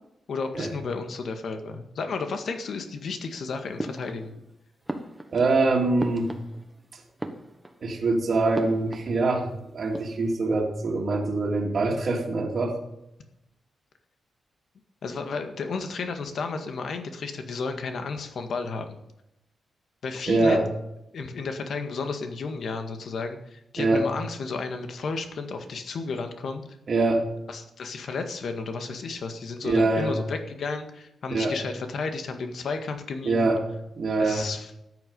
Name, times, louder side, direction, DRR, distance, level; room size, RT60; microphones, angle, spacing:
voice 1, 0.3-4.3 15.0-19.0 20.0-20.7 21.1-26.6 27.5-33.5 34.2-34.7, left 4 dB, 55° left, 6 dB, 1.8 m, -32 dB
sound 1, 3.8-4.5 4.9-6.8 7.1-7.9 8.5-9.5 9.8-10.4, right 1 dB, 5° right, 1.2 m, -37 dB
voice 2, 5.3-6.3 7.8-12.8 20.3-20.7 23.8-24.1 26.9-27.3 29.6-30.2 31.3-31.6 33.2-33.7 34.0-34.5, right 3 dB, 40° right, -2 dB, 2.3 m, -24 dB
13.5 x 9.8 x 5.4 m, 0.83 s
wide cardioid pair, 165°, 0 cm